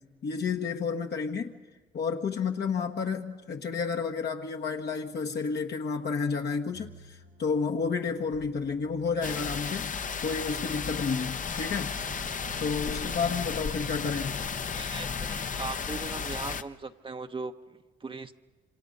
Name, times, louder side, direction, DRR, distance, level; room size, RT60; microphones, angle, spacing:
voice 1, 0.2-1.6 1.9-10.0 10.2-12.0 12.6-14.4, left 5 dB, 55° left, 3 dB, 1.4 m, -31 dB
sound 1, 6.7-15.7, right 9 dB, 90° right, 4.9 m, -51 dB
sound 2, 9.2-16.6, left 6 dB, 40° left, 0.9 m, -34 dB
voice 2, 12.3-12.7 14.7-18.3, right 3 dB, 25° right, 7 dB, 0.9 m, -39 dB
27.0 x 26.0 x 5.3 m, 1.3 s
cardioid pair, 90°, 20 cm